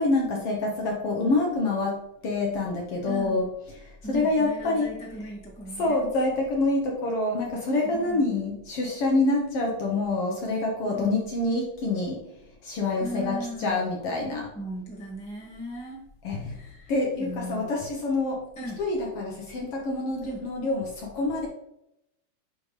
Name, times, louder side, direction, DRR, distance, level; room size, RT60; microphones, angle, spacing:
voice 1, 0.0-2.0 2.2-3.5 3.8-4.9 5.8-12.2 12.6-14.5 16.2-16.6 16.9-18.4 18.8-21.5, left 2 dB, 60° left, -1 dB, 1.7 m, -26 dB
voice 2, 3.0-3.4 4.0-6.1 7.9-8.3 10.8-11.3 13.0-13.8 14.5-16.0 16.5-17.7 18.5-18.8 20.2-20.4, equal, 5° left, -4 dB, 0.7 m, -37 dB
9.8 x 3.5 x 3.3 m, 0.82 s
omnidirectional pair, 3.6 m